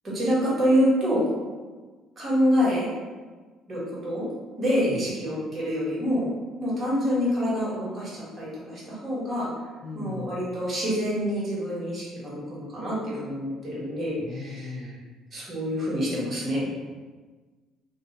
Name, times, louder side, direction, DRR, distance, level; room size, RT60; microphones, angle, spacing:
voice 1, 0.0-1.2 2.2-2.9 3.7-4.3 4.6-6.3 6.6-9.5 9.9-14.9 15.3-16.7, equal, 35° right, -7 dB, 1.4 m, -26 dB
voice 2, 9.8-10.4 14.2-15.0, left 3 dB, 35° left, -1 dB, 0.4 m, -38 dB
2.6 x 2.1 x 3.7 m, 1.4 s
cardioid pair, 95°, 0 cm